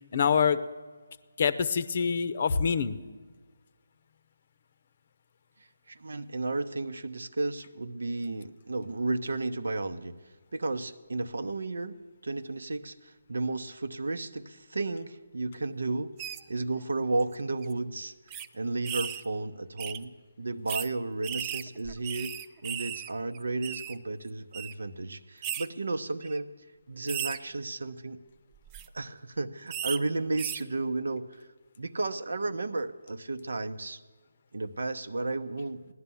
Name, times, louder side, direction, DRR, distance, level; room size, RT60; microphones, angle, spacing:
voice 1, 0.1-0.6 1.4-3.0, left 6 dB, 40° left, 15 dB, 0.7 m, -25 dB
voice 2, 5.9-10.1 10.5-12.0 12.2-26.5 26.9-28.2 28.9-31.5 31.8-34.0 34.5-35.9, right 2 dB, 70° right, 12 dB, 0.9 m, -33 dB
sound 1, 16.2-16.4 17.2-17.3 17.6-17.7 18.3-18.5 18.8-19.2 19.8-20.0 20.7-20.9 21.2-23.1 23.3-23.9 24.5-24.7 25.4-25.7 26.2-26.4 27.1-27.4 28.5-28.9 29.7-30.0 30.4-30.6, right 10 dB, 20° right, 0.5 m, -36 dB
17.0 x 11.0 x 7.0 m, 1.4 s
figure-of-eight pair, 150°, 0 cm